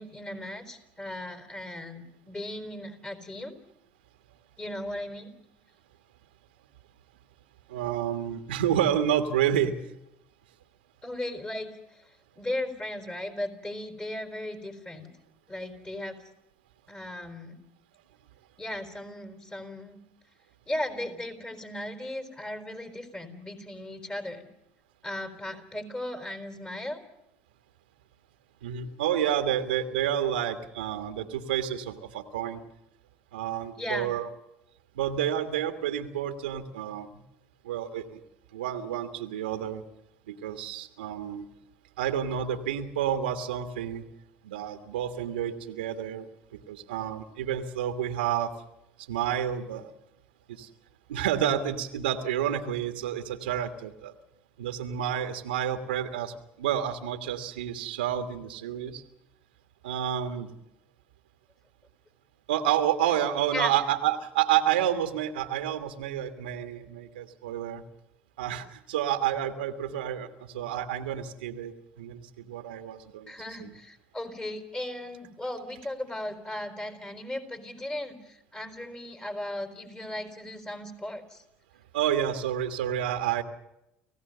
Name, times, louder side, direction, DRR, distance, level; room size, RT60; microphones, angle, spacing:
voice 1, 0.0-3.5 4.6-5.3 11.0-12.0 12.4-15.1 15.5-16.2 16.9-17.6 18.6-20.0 20.7-24.5 25.0-27.0 33.8-34.2 63.5-63.7 73.3-81.4, left 1 dB, 20° left, 6 dB, 4.3 m, -36 dB
voice 2, 7.7-9.7 28.6-32.6 33.3-34.3 35.0-37.1 37.6-38.2 38.5-39.8 40.3-41.4 42.0-44.0 44.4-46.3 46.7-48.5 49.1-49.9 50.6-50.7 51.1-54.1 54.6-59.0 59.8-60.5 62.5-67.8 68.4-70.3 70.5-71.7 72.0-73.3 73.6-73.7 81.9-83.4, right 10 dB, 85° right, 7 dB, 1.5 m, -29 dB
29.5 x 16.0 x 6.8 m, 0.87 s
hypercardioid pair, 70°, 5 cm